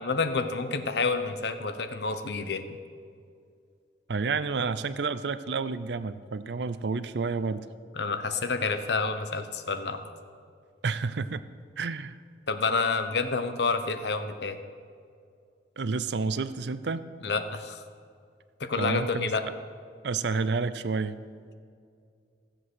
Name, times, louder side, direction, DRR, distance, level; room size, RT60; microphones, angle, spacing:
voice 1, 0.0-2.8 7.9-10.0 12.5-14.6 17.2-17.8 18.6-19.4, left 4 dB, 70° left, 9 dB, 0.9 m, -29 dB
voice 2, 4.1-7.7 10.8-11.4 11.8-12.2 15.8-17.1 18.8-19.6 20.0-21.2, right 4 dB, 75° right, 14 dB, 0.5 m, -30 dB
15.5 x 7.8 x 6.3 m, 2.3 s
head